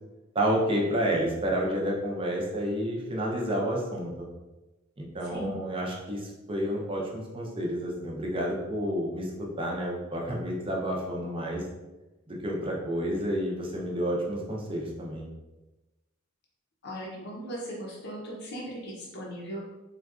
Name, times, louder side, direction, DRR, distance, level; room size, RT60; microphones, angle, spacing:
voice 1, 0.3-4.3 5.0-11.6 12.3-15.3, equal, 25° right, -2 dB, 0.6 m, -30 dB
voice 2, 16.8-19.6, equal, 55° left, -3 dB, 0.6 m, -38 dB
3.7 x 2.3 x 2.4 m, 1.1 s
head